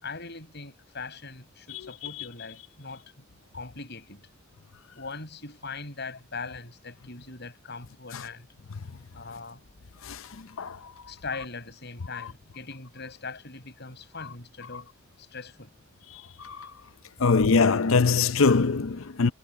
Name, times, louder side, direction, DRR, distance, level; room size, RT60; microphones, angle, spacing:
voice 1, 0.0-3.3 3.5-4.2 4.9-8.5 9.1-9.6 11.1-14.9 15.2-15.7, left 4 dB, 55° left, 7.2 m, -40 dB
voice 2, 10.0-10.9 16.4-16.7 17.2-19.3, left 4 dB, 80° left, 0.7 m, -23 dB
head